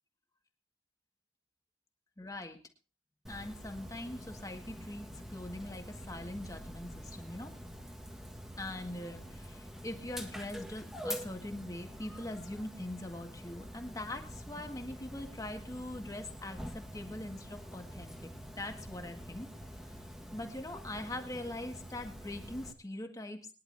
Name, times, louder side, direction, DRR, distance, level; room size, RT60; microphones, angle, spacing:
voice 1, 2.2-2.6 3.3-7.6 8.6-18.3 18.6-19.5 20.3-23.5, left 1 dB, 20° left, 4 dB, 1.8 m, -42 dB
Dog, 3.3-22.7, equal, 5° right, 1.5 m, -46 dB
23.0 x 11.0 x 2.7 m, 0.33 s
head